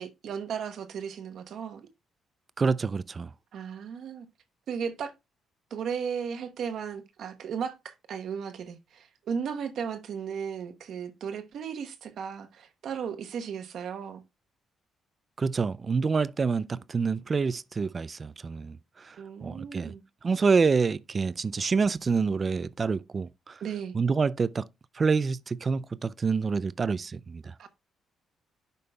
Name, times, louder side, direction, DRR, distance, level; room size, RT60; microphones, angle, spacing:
voice 1, 0.0-1.9 3.5-4.3 4.7-5.1 5.7-14.2 19.2-20.0 23.6-24.0 27.6-27.7, right 7 dB, 65° right, 0.9 m, -35 dB
voice 2, 2.6-3.3 15.4-19.2 19.4-19.9 20.2-23.6 23.9-24.7 24.9-27.5, right 5 dB, 35° right, 0.3 m, -27 dB
10.5 x 5.3 x 2.2 m
cardioid pair, 90°, 0 cm